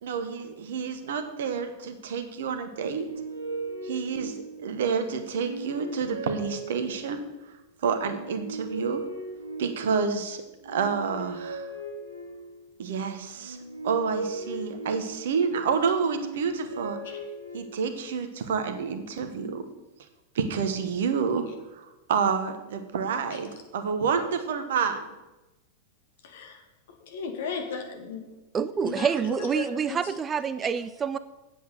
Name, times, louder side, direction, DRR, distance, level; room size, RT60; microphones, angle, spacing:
voice 1, 0.0-3.1 3.8-7.3 7.8-9.0 9.6-11.7 12.8-13.6 13.8-17.0 17.5-19.6 20.3-21.5 21.8-25.0, right 6 dB, 60° right, 8 dB, 1.2 m, -29 dB
sound 1, 2.7-4.8 5.3-7.3 8.0-10.1 10.6-12.6 13.3-15.5 16.0-18.0, right 2 dB, 75° right, 2.0 m, -38 dB
voice 2, 26.2-26.6 26.9-28.3 28.8-30.1 30.6-30.7, left 5 dB, 60° left, 4 dB, 1.9 m, -36 dB
voice 3, 28.5-31.2, right 7 dB, 20° right, 14 dB, 0.4 m, -27 dB
8.5 x 8.1 x 6.6 m, 1.0 s
figure-of-eight pair, 90°, 0 cm